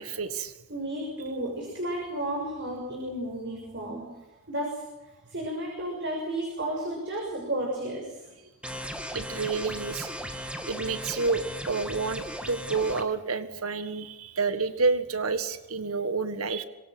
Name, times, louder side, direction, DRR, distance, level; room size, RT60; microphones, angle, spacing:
voice 1, 0.0-0.5 9.1-10.1 10.7-16.6, right 4 dB, 80° right, 11 dB, 1.7 m, -29 dB
voice 2, 0.7-4.1 4.5-4.8 5.3-8.2, right 1 dB, 50° right, 0 dB, 6.7 m, -32 dB
sound 1, 8.6-13.0, equal, 5° right, 2.2 m, -37 dB
26.0 x 24.0 x 6.3 m, 1.1 s
head